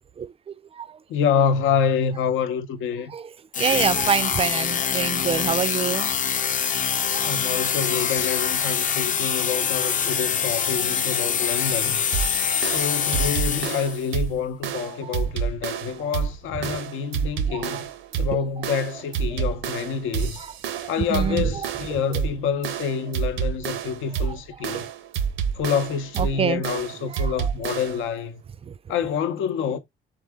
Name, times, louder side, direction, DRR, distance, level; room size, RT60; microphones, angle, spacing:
voice 1, 0.2-1.0 3.1-6.1 7.1-7.3 9.8-9.9 11.1-11.5 12.5-12.7 15.0-15.1 16.6-16.8 17.5-17.8 20.4-22.0 24.3-24.4 24.7-24.9 26.2-26.6 27.1-27.5 28.6-28.8, right 7 dB, 30° right, 0.3 m, -28 dB
voice 2, 1.1-3.1 7.2-12.0 12.6-17.8 18.2-20.5 20.9-24.8 25.5-28.4 28.9-29.8, left 7 dB, 85° left, 0.7 m, -27 dB
sound 1, 3.5-14.1, left 7 dB, 40° left, 0.5 m, -25 dB
sound 2, 12.1-28.1, right 7 dB, 90° right, 0.8 m, -29 dB
4.0 x 3.6 x 3.5 m
cardioid pair, 90°, 20 cm